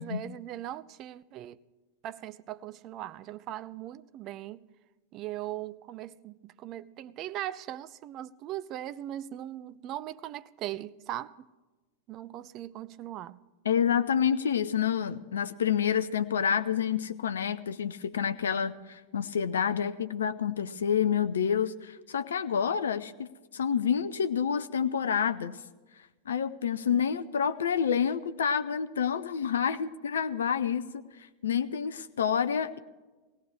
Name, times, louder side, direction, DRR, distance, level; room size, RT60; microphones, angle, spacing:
voice 1, 0.0-1.6 2.0-4.7 5.1-11.5 12.1-13.4 26.8-27.0, right 13 dB, 35° right, 0.5 m, -39 dB
voice 2, 13.7-23.3 23.5-25.6 26.3-30.8 31.4-32.8, left 7 dB, 65° left, 0.5 m, -28 dB
22.0 x 17.5 x 3.2 m
figure-of-eight pair, 90°, 0 cm